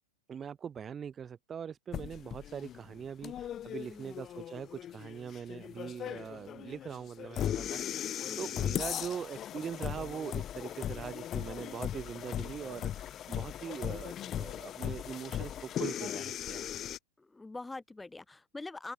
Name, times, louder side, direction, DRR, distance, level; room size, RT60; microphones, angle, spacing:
voice 1, 0.3-7.8 8.4-16.8, right 7 dB, 20° right, 1.2 m, -42 dB
sound 1, 1.9-17.0, left 10 dB, 30° left, 1.0 m, -38 dB
voice 2, 3.8-4.1 7.6-8.0 8.3-8.7 17.2-18.9, left 3 dB, 10° left, 7.3 m, -45 dB
open air
figure-of-eight pair, 90°, 0 cm